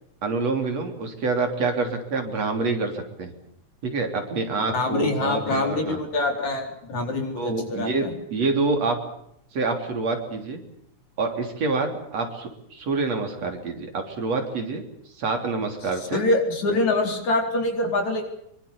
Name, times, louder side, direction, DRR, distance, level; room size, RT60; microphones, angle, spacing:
voice 1, 0.2-3.3 3.8-6.0 7.4-8.1 8.3-9.0 9.5-10.6 11.2-14.8 15.2-16.2, right 3 dB, 55° right, 4 dB, 4.5 m, -27 dB
voice 2, 4.6-8.1 16.0-18.2, left 2 dB, 65° left, 3 dB, 5.7 m, -25 dB
25.5 x 23.5 x 7.0 m, 0.74 s
omnidirectional pair, 3.5 m